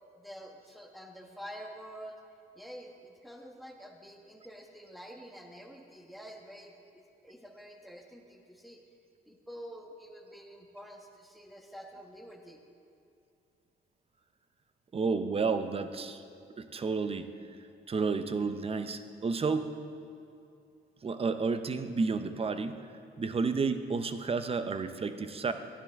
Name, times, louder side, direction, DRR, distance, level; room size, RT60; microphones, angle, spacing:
voice 1, 0.2-2.2 2.5-8.8 9.3-12.6, equal, ahead, 2 dB, 1.1 m, -48 dB
voice 2, 14.9-16.2 16.6-17.3 17.9-19.8 21.0-22.9 23.2-25.5, right 4 dB, 30° right, 10 dB, 0.6 m, -31 dB
12.5 x 10.0 x 3.5 m, 2.6 s
cardioid pair, 90°, 20 cm